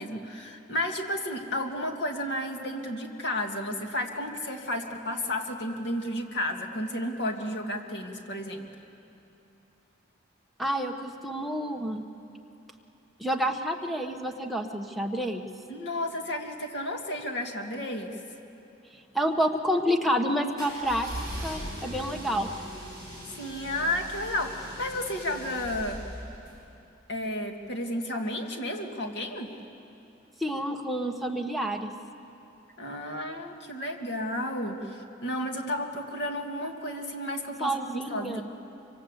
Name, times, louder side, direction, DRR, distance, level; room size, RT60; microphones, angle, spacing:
voice 1, 0.0-8.7 15.7-18.2 23.3-26.0 27.1-29.5 32.8-38.4, left 1 dB, 60° left, 2 dB, 2.3 m, -32 dB
voice 2, 10.6-12.1 13.2-15.5 19.1-21.1 21.4-22.5 30.4-31.9 37.6-38.4, equal, ahead, 1 dB, 1.3 m, -29 dB
sound 1, 20.6-26.5, equal, 20° left, 7.4 m, -40 dB
25.0 x 25.0 x 8.3 m, 2.9 s
head